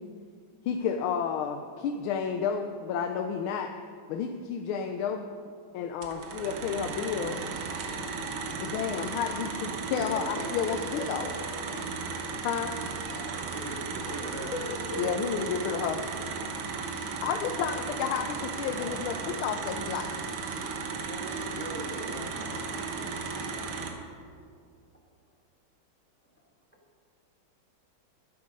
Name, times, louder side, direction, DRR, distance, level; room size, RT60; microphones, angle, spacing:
voice 1, 0.6-3.7 4.1-5.3 5.7-7.4 8.6-11.3 12.4-12.7 15.0-16.4 17.0-20.1, left 7 dB, 85° left, 6 dB, 1.4 m, -31 dB
sound 1, 6.0-23.9, right 4 dB, 90° right, 1.9 m, -35 dB
voice 2, 9.7-11.8 14.3-15.5, left 1 dB, 45° left, -2 dB, 1.2 m, -39 dB
voice 3, 13.1-14.8 18.4-19.0 21.0-24.5 26.2-26.3, right 1 dB, 5° left, -2 dB, 1.2 m, -44 dB
12.0 x 7.8 x 5.3 m, 2.1 s
omnidirectional pair, 2.3 m